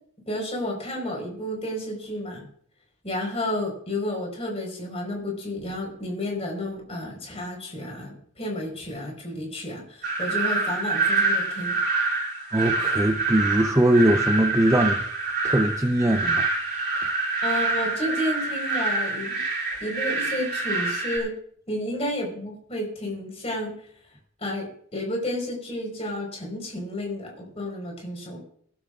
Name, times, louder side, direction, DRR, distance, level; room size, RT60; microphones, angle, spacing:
voice 1, 0.3-2.5 3.0-11.8 17.4-19.4 19.8-21.3 21.7-23.7 24.4-28.4, left 1 dB, 30° left, 1 dB, 4.5 m, -31 dB
sound 1, 10.0-21.2, right 3 dB, 45° right, 5.9 m, -26 dB
voice 2, 12.5-15.0 15.4-16.5, right 1 dB, 15° right, 5 dB, 0.6 m, -21 dB
23.5 x 12.0 x 2.4 m, 0.63 s
head